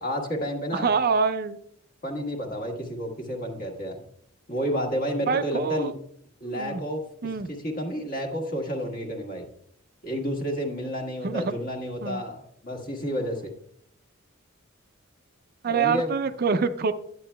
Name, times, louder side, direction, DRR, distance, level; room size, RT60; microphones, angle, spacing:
voice 1, 0.0-0.9 2.0-4.0 4.5-5.9 6.4-7.0 7.5-9.5 10.0-13.5 15.7-16.1, equal, 40° left, 1 dB, 1.4 m, -30 dB
voice 2, 0.7-1.6 5.3-5.9 6.4-6.8 7.2-7.5 11.2-11.5 12.0-12.2 15.6-16.9, right 5 dB, 45° right, 10 dB, 0.4 m, -25 dB
10.5 x 8.2 x 2.2 m, 0.67 s
head